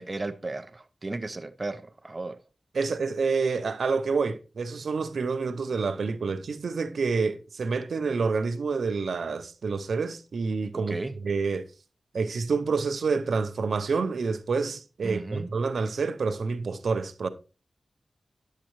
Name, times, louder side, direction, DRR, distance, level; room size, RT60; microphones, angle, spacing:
voice 1, 0.0-2.4 10.7-11.2 15.0-15.5, right 2 dB, 35° right, 0.6 m, -35 dB
voice 2, 2.7-11.0 11.2-11.7 12.1-17.3, right 4 dB, 90° right, 0.5 m, -28 dB
10.0 x 7.4 x 3.0 m
wide cardioid pair, 80°, 0 cm